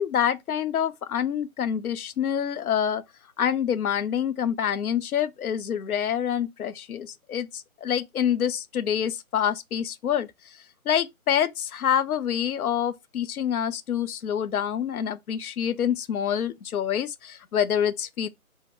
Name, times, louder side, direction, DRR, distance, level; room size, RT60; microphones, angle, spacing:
voice 1, 0.0-3.0 3.4-18.3, left 9 dB, 85° left, 0.5 m, -27 dB
2.7 x 2.0 x 3.3 m
hypercardioid pair, 170°, 43 cm